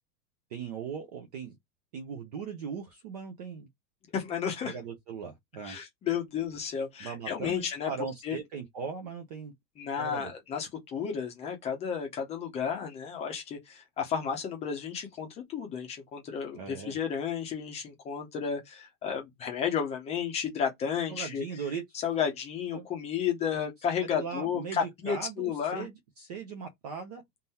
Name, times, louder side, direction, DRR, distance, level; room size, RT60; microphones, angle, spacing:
voice 1, 0.5-1.6 1.9-3.7 4.6-5.8 7.0-9.5 10.0-10.3 16.5-17.0 21.1-22.0 22.7-22.9 23.5-23.6 24.0-27.2, right 6 dB, 25° right, 0.4 m, -39 dB
voice 2, 4.1-4.7 5.6-7.9 8.2-8.4 9.8-21.4 22.0-25.9, left 7 dB, 15° left, 0.7 m, -32 dB
3.7 x 2.6 x 4.1 m
supercardioid pair, 165°, 49 cm